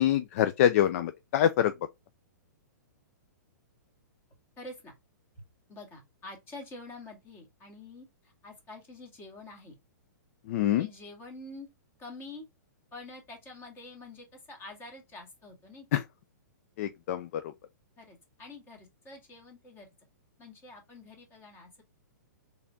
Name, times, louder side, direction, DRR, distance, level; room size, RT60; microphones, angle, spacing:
voice 1, 0.0-1.7 10.5-10.9 15.9-16.0 16.8-17.4, left 11 dB, 50° left, 0.4 m, -25 dB
voice 2, 4.6-4.9 5.3-5.4 5.7-9.7 10.8-11.7 12.0-12.5 12.9-15.9 18.0-19.9 20.4-21.8, left 2 dB, 20° left, 2.0 m, -47 dB
4.2 x 3.4 x 2.7 m
hypercardioid pair, 135°, 10 cm